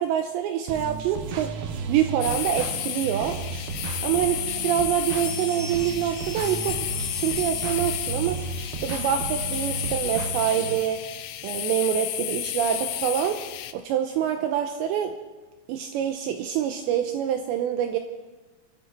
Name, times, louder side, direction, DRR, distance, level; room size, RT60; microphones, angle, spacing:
voice 1, 0.0-1.5 1.9-3.4 4.0-6.8 7.2-8.4 8.8-11.0 11.4-13.4 13.7-15.1 15.7-18.0, right 10 dB, 85° right, 6 dB, 2.6 m, -26 dB
sound 1, 0.7-10.8, right 5 dB, 70° right, 2.6 m, -34 dB
sound 2, 2.2-13.7, left 14 dB, 85° left, 2.5 m, -32 dB
Bell, 5.1-8.2, equal, 20° left, 2.5 m, -42 dB
25.0 x 13.5 x 4.2 m, 1.2 s
omnidirectional pair, 5.9 m